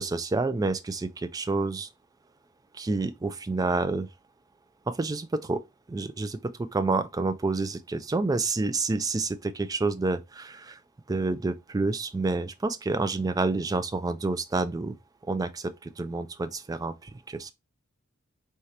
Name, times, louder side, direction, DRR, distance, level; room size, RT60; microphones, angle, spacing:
voice 1, 0.0-1.9 2.7-4.1 4.9-5.6 5.9-10.8 11.1-14.9 15.3-17.5, right 3 dB, 15° right, 0.3 m, -29 dB
4.8 x 2.8 x 3.1 m
head